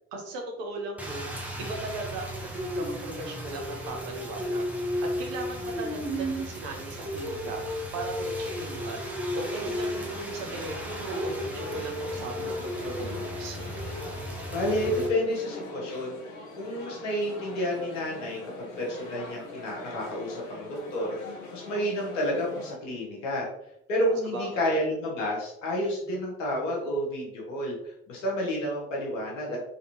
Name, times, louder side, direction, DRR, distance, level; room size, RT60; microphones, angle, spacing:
voice 1, 0.1-1.3 1.6-4.7 5.0-7.6 7.9-9.0 9.3-13.7 24.1-24.8, right 3 dB, 65° right, 1 dB, 1.0 m, -38 dB
Rain, 1.0-15.1, equal, 5° right, 0.9 m, -34 dB
sound 1, 9.3-22.7, left 2 dB, 50° left, 1.1 m, -42 dB
voice 2, 14.5-16.2 16.6-21.2 21.5-23.5 23.9-29.6, equal, 75° left, -2 dB, 1.2 m, -30 dB
4.1 x 3.4 x 2.7 m, 0.78 s
figure-of-eight pair, 45°, 38 cm